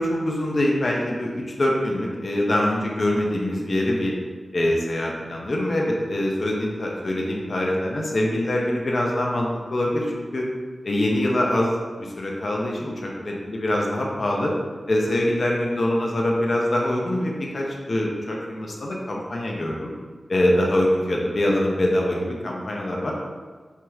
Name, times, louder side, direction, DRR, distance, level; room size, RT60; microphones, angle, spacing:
voice 1, 0.0-4.2 4.5-10.5 10.8-14.5 14.9-19.9 20.3-23.1, left 1 dB, 60° left, -2 dB, 0.6 m, -24 dB
4.5 x 3.0 x 2.3 m, 1.4 s
cardioid pair, 50°, 0 cm